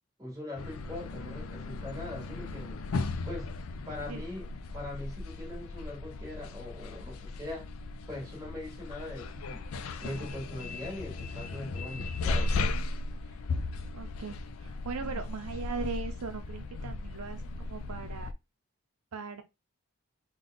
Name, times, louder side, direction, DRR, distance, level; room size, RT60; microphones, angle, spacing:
voice 1, 0.2-2.8 3.2-3.5 3.9-4.5 4.7-7.7 8.1-9.6 10.0-12.6 13.2-13.4, left 1 dB, 15° right, 1.5 m, -41 dB
sound 1, 0.6-18.3, left 3 dB, 75° left, 0.4 m, -36 dB
voice 2, 13.9-18.3 19.1-19.4, right 5 dB, 90° right, 0.6 m, -39 dB
3.5 x 2.3 x 3.9 m
head